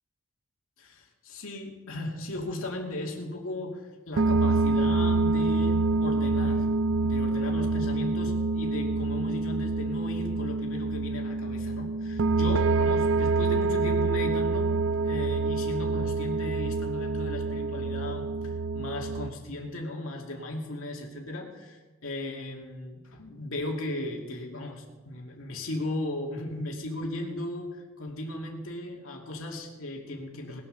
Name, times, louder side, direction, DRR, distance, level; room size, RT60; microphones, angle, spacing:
voice 1, 0.8-6.7 7.0-14.7 15.0-30.6, left 1 dB, 70° left, 1 dB, 2.5 m, -36 dB
sound 1, 4.2-19.3, right 3 dB, 55° right, 0.4 m, -26 dB
19.5 x 7.2 x 6.7 m, 1.2 s
head